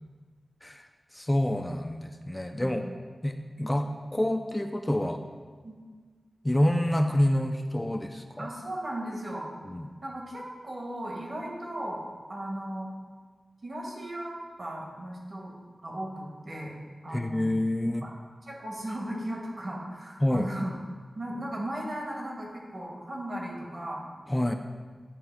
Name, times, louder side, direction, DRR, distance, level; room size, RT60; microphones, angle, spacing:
voice 1, 1.1-2.9 3.2-5.2 6.4-8.5 9.7-9.9 17.1-18.1 20.2-20.5 24.3-24.5, left 1 dB, 15° left, 5 dB, 0.4 m, -27 dB
voice 2, 8.4-9.5 10.0-12.9 13.6-15.5 15.8-16.7 17.0-18.1 18.4-20.7 21.1-24.0, right 1 dB, 55° right, -2 dB, 1.6 m, -36 dB
9.9 x 3.4 x 4.7 m, 1.5 s
wide cardioid pair, 85°, 0 cm